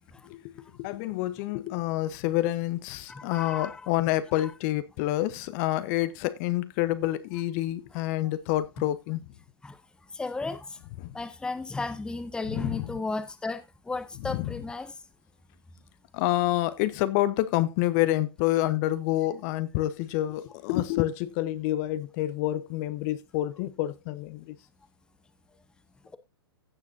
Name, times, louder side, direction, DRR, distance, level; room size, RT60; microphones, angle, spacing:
voice 1, 0.8-9.2 11.0-11.1 12.5-12.9 14.3-14.5 16.1-24.5, left 15 dB, 40° left, 0.9 m, -28 dB
voice 2, 3.1-3.9 4.3-4.5 9.6-9.8 10.1-10.8 11.1-14.9, left 3 dB, 5° left, 0.8 m, -34 dB
15.5 x 7.2 x 2.7 m
hypercardioid pair, 115°, 14 cm